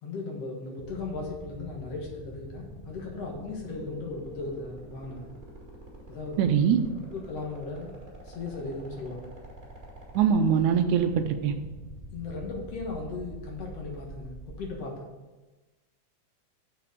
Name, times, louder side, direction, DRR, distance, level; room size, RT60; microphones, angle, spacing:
voice 1, 0.0-5.3 6.1-6.7 7.1-7.9 8.2-9.3 12.1-15.1, left 3 dB, 60° left, -1 dB, 2.3 m, -37 dB
sound 1, 0.8-14.8, right 2 dB, 5° right, 2.5 m, -45 dB
voice 2, 6.4-6.8 10.2-11.5, right 7 dB, 80° right, 7 dB, 2.0 m, -22 dB
7.0 x 5.8 x 6.5 m, 1.2 s
omnidirectional pair, 3.5 m